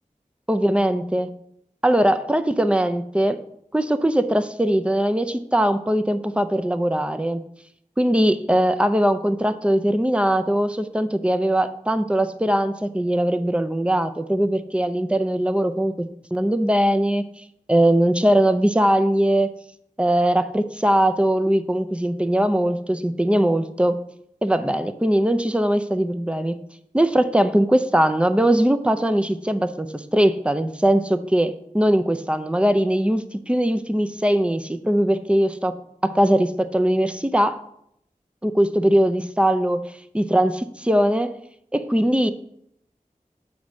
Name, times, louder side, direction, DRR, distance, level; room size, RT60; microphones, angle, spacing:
voice 1, 0.5-1.3 1.8-3.4 3.7-7.4 8.0-17.2 17.7-19.5 20.0-24.0 24.4-26.6 26.9-35.8 36.0-37.6 38.4-39.8 40.1-41.3 41.7-42.3, right 1 dB, 10° right, 9 dB, 0.4 m, -20 dB
6.9 x 3.2 x 6.1 m, 0.73 s
wide cardioid pair, 50°, 14 cm